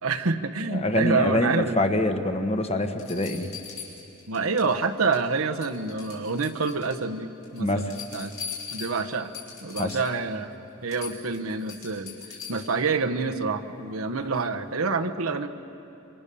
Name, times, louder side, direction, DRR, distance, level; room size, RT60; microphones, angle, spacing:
voice 1, 0.0-1.8 4.3-8.3 8.7-9.3 9.6-10.5 10.8-15.5, right 4 dB, 75° right, 6 dB, 1.2 m, -27 dB
voice 2, 0.7-3.5 7.6-7.9 9.8-10.0, left 1 dB, 30° left, 6 dB, 1.3 m, -25 dB
sound 1, 2.3-2.4 3.0-4.7 5.0-5.3 5.6-7.0 7.4-10.2 10.5-10.6 10.9-12.8 14.5-14.6, left 6 dB, 80° left, 5.6 m, -40 dB
27.0 x 26.5 x 7.0 m, 2.7 s
head